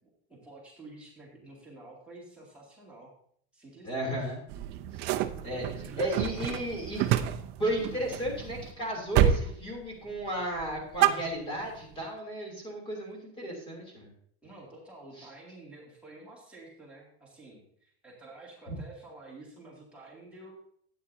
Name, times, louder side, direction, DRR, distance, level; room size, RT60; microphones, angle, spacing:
voice 1, 0.0-3.1 3.5-4.3 5.9-6.0 14.4-20.5, right 2 dB, 5° right, -6 dB, 2.4 m, -50 dB
voice 2, 3.8-4.4 4.9-5.1 5.4-7.1 7.6-14.1 15.2-15.3 18.7-18.8, equal, 15° left, 0 dB, 3.2 m, -34 dB
sound 1, 4.5-8.7 9.1-9.5 9.8-10.2 10.6-11.8, right 11 dB, 35° right, 0.4 m, -28 dB
12.5 x 9.0 x 2.8 m, 0.63 s
supercardioid pair, 170°, 32 cm